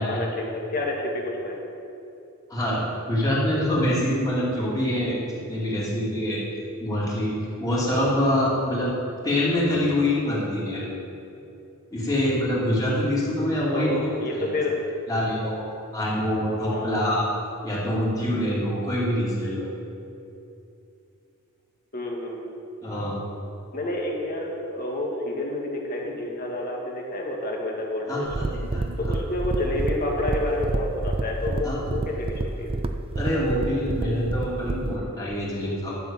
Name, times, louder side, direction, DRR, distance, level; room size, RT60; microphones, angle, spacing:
voice 1, 0.0-1.6 13.7-14.7 16.7-17.1 21.9-22.5 23.7-28.5 28.7-32.7, left 1 dB, 40° left, -1 dB, 2.0 m, -29 dB
voice 2, 2.5-6.4 6.8-7.3 7.6-9.0 9.2-10.9 11.9-14.1 14.3-14.5 15.1-15.6 15.9-17.3 17.6-19.7 22.8-23.2 28.1-29.1 31.6-31.7 33.1-36.0, left 1 dB, 15° left, -7 dB, 3.0 m, -25 dB
sound 1, 28.3-35.0, right 2 dB, 25° right, 0.4 m, -28 dB
11.5 x 6.6 x 7.3 m, 2.7 s
head